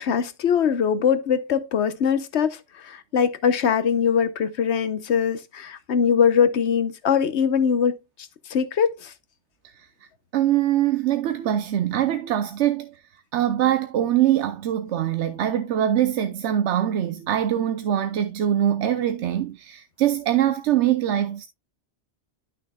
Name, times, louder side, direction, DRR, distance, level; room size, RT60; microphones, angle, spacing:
voice 1, 0.0-2.6 2.8-7.9 8.5-9.1, left 7 dB, 75° left, 1.1 m, -22 dB
voice 2, 10.3-12.9 13.3-21.5, right 11 dB, 90° right, 0.9 m, -23 dB
11.5 x 6.3 x 2.3 m
omnidirectional pair, 1.2 m